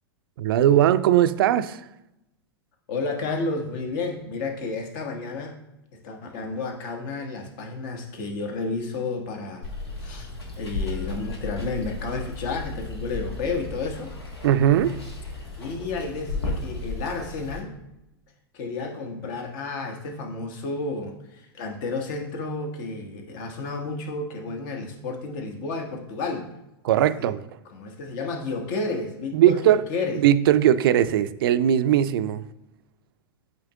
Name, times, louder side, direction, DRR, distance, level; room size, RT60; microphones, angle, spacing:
voice 1, 0.4-1.8 14.4-15.0 26.8-27.4 29.3-29.8 30.2-32.5, right 11 dB, 65° right, 0.4 m, -19 dB
voice 2, 2.9-5.6 5.9-9.7 10.0-10.3 10.6-14.1 15.6-17.7 18.5-26.5 27.2-27.3 27.7-30.2, left 3 dB, 50° left, 1.2 m, -31 dB
Water, 9.6-17.6, left 3 dB, 85° left, 1.5 m, -34 dB
8.2 x 3.2 x 3.6 m
hypercardioid pair, 100°, 13 cm